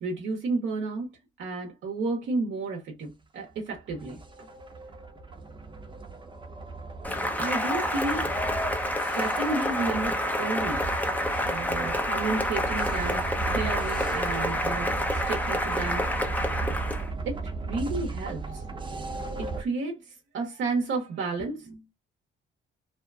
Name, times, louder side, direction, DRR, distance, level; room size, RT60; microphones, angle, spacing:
voice 1, 0.0-1.1 1.4-4.5 7.4-8.3 8.9-10.8 11.4-16.4 17.3-18.6 19.4-21.8, right 3 dB, 70° right, 0.8 m, -32 dB
sound 1, 3.5-19.6, right 4 dB, 25° right, 0.8 m, -36 dB
Cheering / Applause, 7.0-17.1, left 1 dB, 10° left, 0.6 m, -28 dB
2.7 x 2.1 x 2.3 m
cardioid pair, 90°, 20 cm